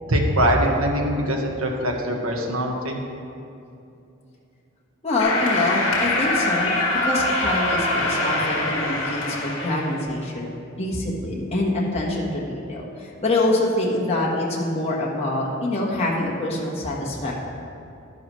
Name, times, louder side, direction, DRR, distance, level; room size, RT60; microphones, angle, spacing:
voice 1, 0.1-3.0, equal, 80° right, 1 dB, 1.3 m, -22 dB
voice 2, 5.0-10.5 10.8-17.3, left 2 dB, 30° left, -4 dB, 1.3 m, -25 dB
sound 1, 5.2-10.0, left 2 dB, 65° left, 1.7 m, -24 dB
11.0 x 10.5 x 3.1 m, 2.7 s
head